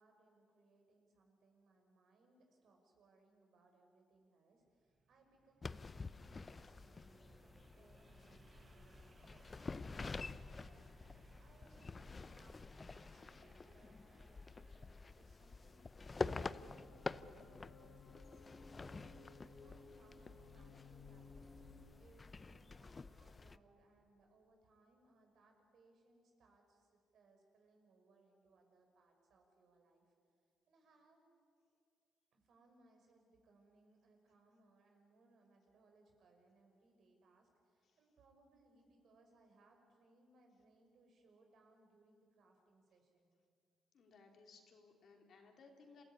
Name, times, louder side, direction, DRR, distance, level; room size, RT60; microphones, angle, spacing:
voice 1, 0.0-30.1 30.7-31.2 32.3-43.3, right 2 dB, 65° right, 3 dB, 5.5 m, -70 dB
sound 1, 4.7-16.4, right 4 dB, 35° right, 1.4 m, -68 dB
sound 2, 5.6-23.6, left 4 dB, 30° left, 0.6 m, -48 dB
sound 3, 16.2-21.9, left 4 dB, 45° left, 4.6 m, -59 dB
voice 2, 43.9-46.0, left 4 dB, 60° left, 2 dB, 3.7 m, -62 dB
27.0 x 16.0 x 9.9 m, 2.3 s
cardioid pair, 90°, 0 cm